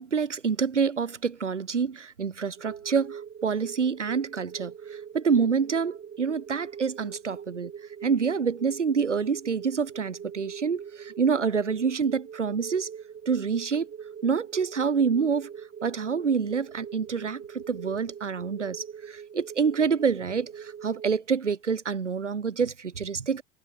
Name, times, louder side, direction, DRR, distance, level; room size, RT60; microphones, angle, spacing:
voice 1, 0.0-7.7 8.0-12.9 13.3-13.9 14.2-15.5 15.8-23.4, right 6 dB, 80° right, 4.8 m, -27 dB
sound 1, 2.6-21.1, right 7 dB, 30° right, 7.2 m, -42 dB
figure-of-eight pair, 75°, 35 cm